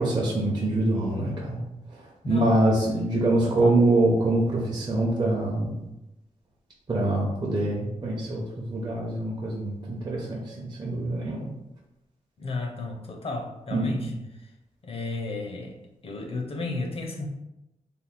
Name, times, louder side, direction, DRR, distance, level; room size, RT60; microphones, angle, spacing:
voice 1, 0.0-1.6 1.9-5.8 6.9-11.5 13.7-14.1, right 2 dB, 35° right, -5 dB, 0.7 m, -25 dB
voice 2, 3.4-3.8 12.4-14.1 14.8-15.8 16.0-17.3, left 3 dB, 45° left, 3 dB, 0.6 m, -33 dB
3.5 x 2.1 x 4.2 m, 0.93 s
wide cardioid pair, 125°, 13 cm